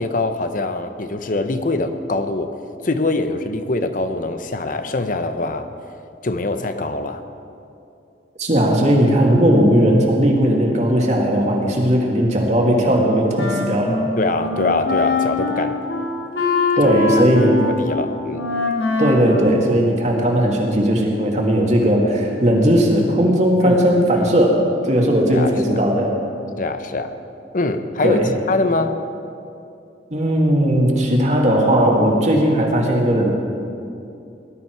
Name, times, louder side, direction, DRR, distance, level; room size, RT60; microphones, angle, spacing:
voice 1, 0.0-2.5 2.8-5.7 6.2-7.2 14.2-15.8 16.8-17.2 17.6-18.5 23.6-24.3 25.3-25.8 26.6-27.2 27.5-29.0, left 2 dB, 50° left, 9 dB, 0.8 m, -23 dB
voice 2, 8.4-14.0 16.8-17.6 19.0-26.1 28.0-28.3 30.1-33.3, equal, 40° right, -1 dB, 2.2 m, -17 dB
Wind instrument woodwind instrument, 12.9-20.3, left 3 dB, 80° left, 1.8 m, -23 dB
19.0 x 12.0 x 4.7 m, 2.7 s
head